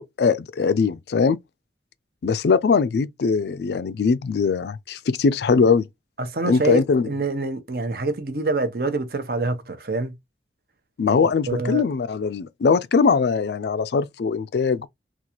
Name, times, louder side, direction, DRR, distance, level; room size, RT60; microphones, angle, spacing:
voice 1, 0.0-1.4 2.2-5.9 6.4-7.1 11.0-14.9, left 5 dB, 60° left, 0.3 m, -21 dB
voice 2, 6.2-10.1 11.5-11.8, right 3 dB, 55° right, 0.8 m, -26 dB
3.9 x 2.4 x 2.9 m
head